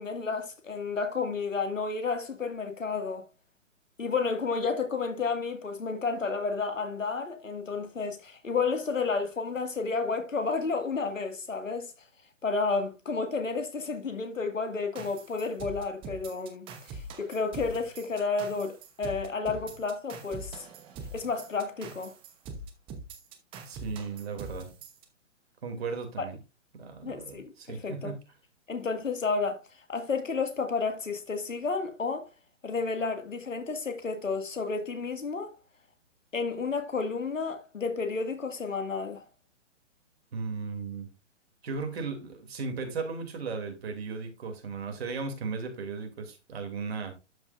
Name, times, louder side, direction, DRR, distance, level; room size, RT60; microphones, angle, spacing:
voice 1, 0.0-3.3 4.0-11.9 12.4-20.7 21.1-22.1 26.2-26.3 27.0-28.1 28.7-29.6 29.9-32.3 32.6-35.5 36.3-39.2, left 4 dB, 85° left, 2.2 m, -31 dB
sound 1, 15.0-25.1, right 3 dB, 15° right, 0.9 m, -43 dB
voice 2, 23.6-24.7 25.6-26.4 26.7-28.2 40.3-41.1 41.6-47.1, right 4 dB, 55° right, 2.8 m, -36 dB
12.0 x 5.3 x 2.5 m
hypercardioid pair, 140°, 38 cm